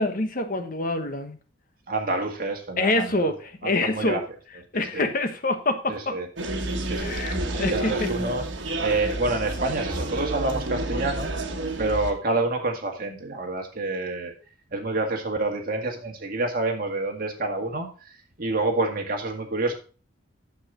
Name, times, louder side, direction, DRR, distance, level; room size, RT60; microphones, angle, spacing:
voice 1, 0.0-1.4 2.8-4.2 4.7-6.2 7.0-8.1, left 2 dB, 45° left, 7 dB, 1.1 m, -26 dB
voice 2, 1.9-3.3 3.9-4.2 4.7-5.1 5.9-6.3 6.8-7.2 7.7-8.4 8.8-11.3 11.8-14.3 14.7-17.9 18.4-19.7, right 2 dB, 50° right, 2 dB, 1.9 m, -27 dB
sound 1, 6.4-12.1, right 2 dB, 75° right, 1.4 m, -29 dB
9.2 x 7.5 x 3.8 m, 0.37 s
head